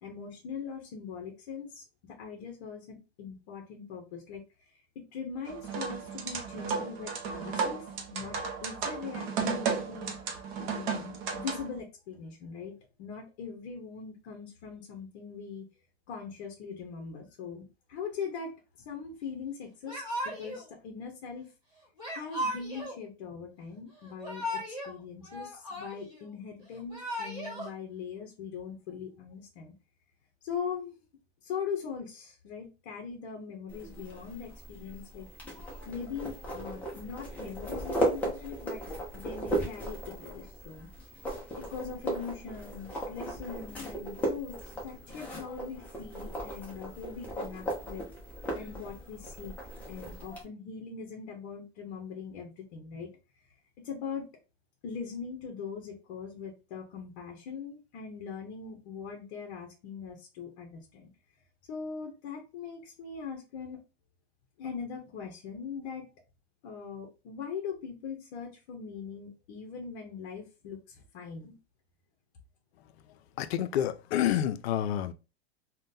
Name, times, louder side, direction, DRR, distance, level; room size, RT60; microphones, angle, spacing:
voice 1, 0.0-10.2 10.6-15.6 16.1-21.5 22.1-29.7 30.4-30.9 31.4-35.3 35.9-38.8 39.1-40.9 41.5-48.0 48.5-49.6 49.9-53.1 53.8-54.3 54.8-61.1 61.7-63.8 64.6-66.1 66.6-71.5, left 6 dB, 45° left, 0.7 m, -41 dB
sound 1, 5.5-11.8, right 5 dB, 35° right, 0.6 m, -34 dB
Yell / Crying sobbing, 19.8-20.6 22.0-23.0 24.0-24.9 25.2-26.2 26.7-27.7, equal, 10° right, 1.5 m, -36 dB
sound 2, 33.7-50.4, right 1 dB, 5° left, 0.4 m, -37 dB
voice 2, 73.4-75.1, left 11 dB, 75° left, 0.5 m, -28 dB
3.6 x 2.2 x 2.6 m
supercardioid pair, 155°, 32 cm